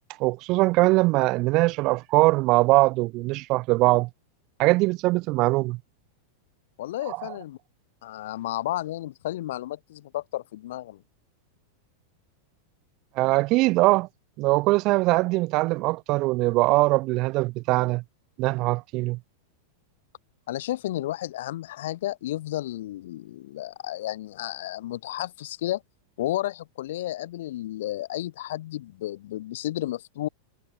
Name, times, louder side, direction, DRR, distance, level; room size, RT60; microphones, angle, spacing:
voice 1, 0.2-4.1 4.6-5.8 7.1-7.2 13.2-14.1 14.4-18.0 18.4-19.2, right 22 dB, 40° right, 0.9 m, -22 dB
voice 2, 6.8-7.6 8.0-11.0 20.5-25.8 26.2-30.3, left 14 dB, 55° left, 6.8 m, -32 dB
figure-of-eight pair, 90°, 0 cm